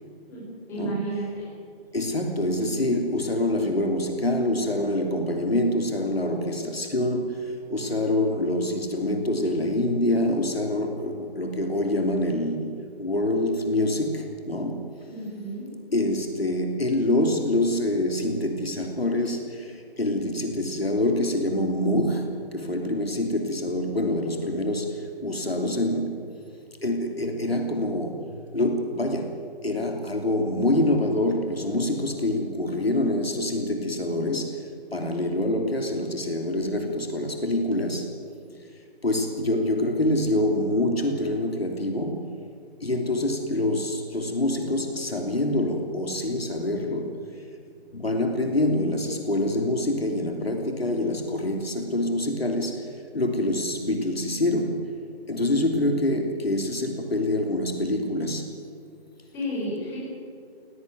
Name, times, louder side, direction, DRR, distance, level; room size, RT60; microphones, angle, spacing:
voice 1, 0.3-1.5 15.1-15.7 59.3-60.0, right 1 dB, 10° left, -6 dB, 5.5 m, -32 dB
voice 2, 1.9-14.9 15.9-26.2 26.8-34.6 34.9-38.2 39.0-42.3 42.8-47.2 47.9-54.9 55.3-58.5, left 1 dB, 70° left, 4 dB, 3.1 m, -26 dB
19.0 x 18.0 x 9.3 m, 2.3 s
figure-of-eight pair, 155°, 31 cm